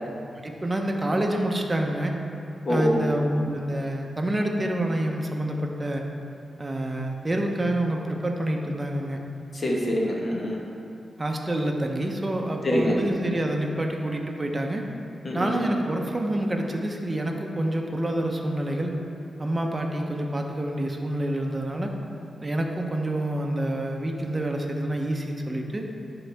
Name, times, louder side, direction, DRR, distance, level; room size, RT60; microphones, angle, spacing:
voice 1, 0.4-2.2 2.7-6.0 6.6-9.2 11.2-14.8 15.3-18.9 19.4-21.9 22.4-25.8, right 1 dB, 25° right, 1 dB, 0.8 m, -27 dB
voice 2, 2.6-3.0 9.5-10.6 12.6-13.0 15.2-15.6, left 1 dB, 40° left, -3 dB, 1.3 m, -25 dB
10.5 x 3.9 x 3.4 m, 2.6 s
cardioid pair, 80°, 0 cm